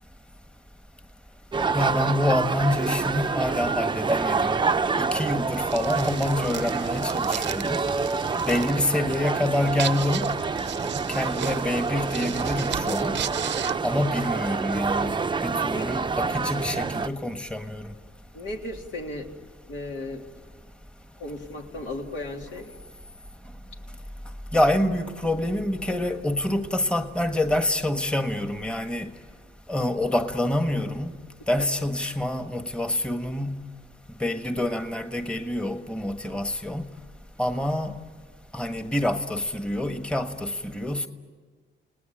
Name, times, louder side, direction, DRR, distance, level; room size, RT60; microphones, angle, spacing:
sound 1, 1.5-17.1, right 4 dB, 25° right, 0.7 m, -27 dB
voice 1, 1.7-4.5 5.0-7.8 8.3-10.3 10.8-13.2 13.8-15.1 15.4-17.9 24.5-29.1 29.7-31.1 31.5-33.6 34.2-36.9 37.4-38.0 38.5-41.1, left 1 dB, 5° left, 1.5 m, -26 dB
sound 2, 5.7-14.5, right 10 dB, 65° right, 0.8 m, -37 dB
voice 2, 15.5-15.9 18.3-19.3 19.7-20.2 21.2-22.7 31.6-31.7, left 1 dB, 70° left, 3.4 m, -35 dB
29.5 x 19.0 x 8.8 m
cardioid pair, 90°, 20 cm